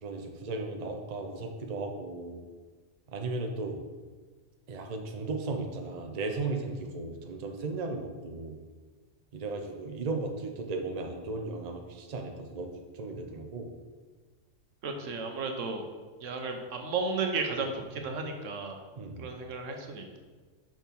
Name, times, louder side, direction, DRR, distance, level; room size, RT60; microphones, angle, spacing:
voice 1, 0.0-2.4 3.1-3.8 4.7-8.6 9.3-13.7 19.0-19.3, right 3 dB, 40° right, 3 dB, 0.7 m, -36 dB
voice 2, 14.8-15.8 16.2-18.8 19.2-20.2, right 4 dB, 80° right, 4 dB, 1.2 m, -33 dB
6.0 x 4.6 x 5.3 m, 1.4 s
omnidirectional pair, 1.3 m